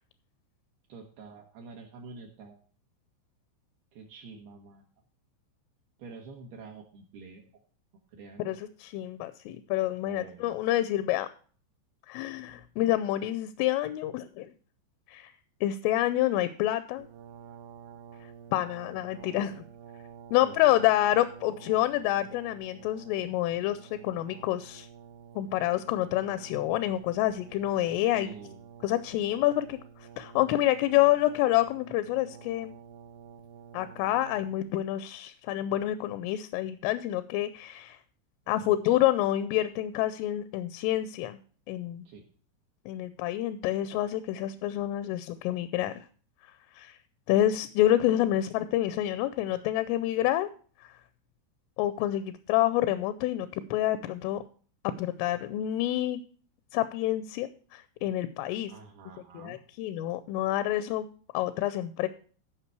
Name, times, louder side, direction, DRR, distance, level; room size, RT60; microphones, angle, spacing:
voice 1, 0.9-2.6 3.9-4.8 6.0-7.4 8.1-8.6 10.0-10.6 20.4-20.8 28.1-28.6 38.5-38.8 42.1-42.3 58.7-59.6, right 4 dB, 70° right, 1 dB, 2.6 m, -47 dB
voice 2, 8.4-11.3 12.1-14.5 15.1-15.3 15.6-17.1 18.5-19.6 20.3-24.9 25.4-28.3 28.8-32.7 33.7-38.0 38.5-41.4 41.7-42.1 42.9-46.0 46.7-47.0 47.3-50.5 50.8-50.9 51.8-54.4 54.8-56.2 56.7-58.7 59.3-61.1 61.3-62.1, left 14 dB, 85° left, 13 dB, 3.1 m, -28 dB
Brass instrument, 17.0-34.8, right 7 dB, 90° right, 2.2 m, -50 dB
15.0 x 5.7 x 4.6 m, 0.43 s
omnidirectional pair, 5.8 m